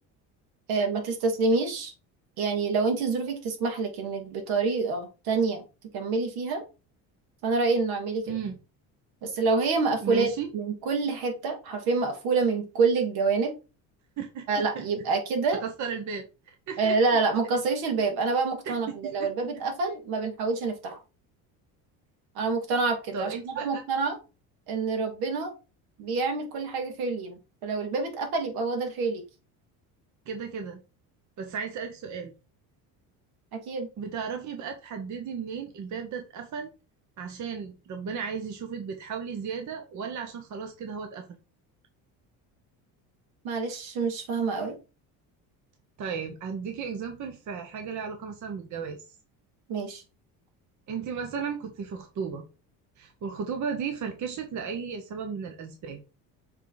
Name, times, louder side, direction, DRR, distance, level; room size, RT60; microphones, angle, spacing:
voice 1, 0.7-1.9 2.4-5.6 5.9-6.6 7.4-8.3 9.2-13.5 14.5-15.6 16.8-21.0 22.4-24.2 24.7-25.5 26.0-29.2 33.5-33.9 43.4-44.8 49.7-50.0, right 4 dB, 75° right, 4 dB, 2.2 m, -27 dB
voice 2, 8.3-8.6 10.0-10.5 14.2-14.4 14.7-15.0 15.6-17.0 18.7-19.3 23.1-23.8 30.3-30.8 31.4-32.3 34.0-36.7 37.2-41.4 46.0-49.0 50.9-52.4 53.0-56.0, right 6 dB, 50° right, 5 dB, 1.1 m, -35 dB
7.3 x 3.5 x 4.0 m, 0.31 s
cardioid pair, 120°, 38 cm